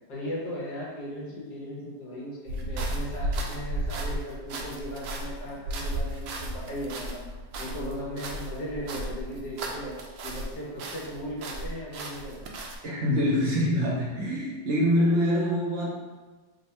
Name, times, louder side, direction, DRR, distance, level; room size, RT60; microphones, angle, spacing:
voice 1, 0.1-7.2 7.6-10.0 10.2-12.6 15.0-15.1, equal, 75° left, -5 dB, 1.5 m, -37 dB
sound 1, 2.5-10.5 10.8-12.8, right 1 dB, 85° right, 1.2 m, -34 dB
voice 2, 12.8-15.9, equal, 50° right, -4 dB, 0.9 m, -25 dB
3.5 x 2.2 x 4.1 m, 1.3 s
omnidirectional pair, 1.8 m